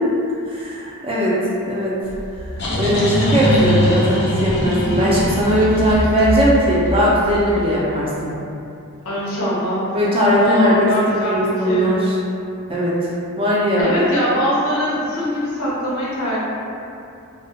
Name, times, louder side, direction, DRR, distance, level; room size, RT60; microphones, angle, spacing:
voice 1, 0.5-1.3 1.7-1.9 2.7-8.3 9.9-10.9 11.2-12.2 12.7-13.1 13.4-13.9, equal, 25° right, -6 dB, 0.4 m, -18 dB
sound 1, 2.1-7.6, equal, 50° left, 0.5 m, -21 dB
voice 2, 9.0-9.9 10.4-12.0 13.8-16.4, equal, 90° left, -8 dB, 0.7 m, -22 dB
2.2 x 2.1 x 2.6 m, 2.6 s
head